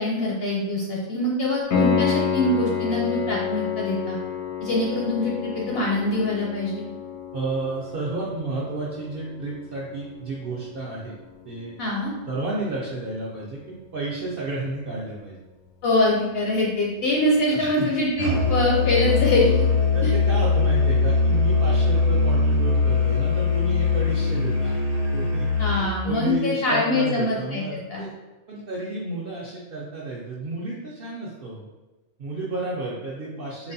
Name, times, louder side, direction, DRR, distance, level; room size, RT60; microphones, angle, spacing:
voice 1, 0.0-4.2 4.6-6.8 11.8-12.1 15.8-19.6 20.0-20.1 25.6-28.1 33.6-33.7, left 1 dB, 65° left, -3 dB, 0.6 m, -24 dB
Piano, 1.7-12.4 15.7-15.8, left 7 dB, 85° left, 1.1 m, -30 dB
voice 2, 7.3-11.1 11.4-11.7 12.3-15.4 17.5-17.9 19.9-24.8 25.1-28.1 28.5-31.7 32.2-33.7, right 2 dB, 65° right, -5 dB, 0.5 m, -31 dB
Musical instrument, 18.2-26.0, left 4 dB, 45° right, 0.9 m, -21 dB
4.0 x 2.2 x 2.6 m, 1.1 s
omnidirectional pair, 1.4 m